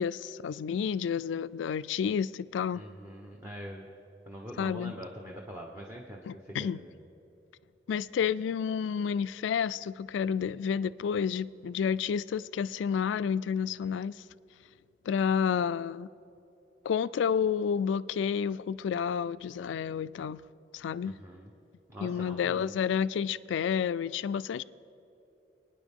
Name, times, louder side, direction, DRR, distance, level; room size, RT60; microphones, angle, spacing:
voice 1, 0.0-2.8 4.6-4.9 6.3-6.8 7.9-14.2 15.1-16.1 16.8-20.4 20.7-21.1 22.0-24.6, left 7 dB, 80° left, 0.3 m, -30 dB
voice 2, 2.7-3.9 4.3-6.9 21.0-21.5 21.9-22.7, equal, 15° right, 1.0 m, -44 dB
27.0 x 9.8 x 3.6 m
head